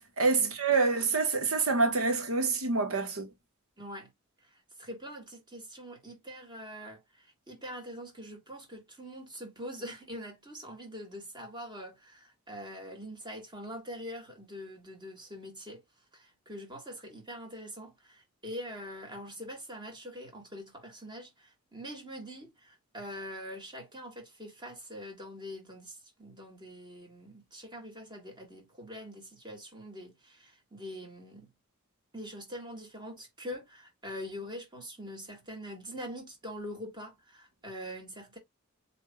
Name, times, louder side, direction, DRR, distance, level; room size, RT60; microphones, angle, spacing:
voice 1, 0.2-3.3, right 4 dB, 80° right, 1.2 m, -27 dB
voice 2, 3.8-4.1 4.8-15.8 16.1-31.5 32.1-38.4, equal, 20° right, 1.7 m, -44 dB
7.7 x 2.8 x 2.3 m
head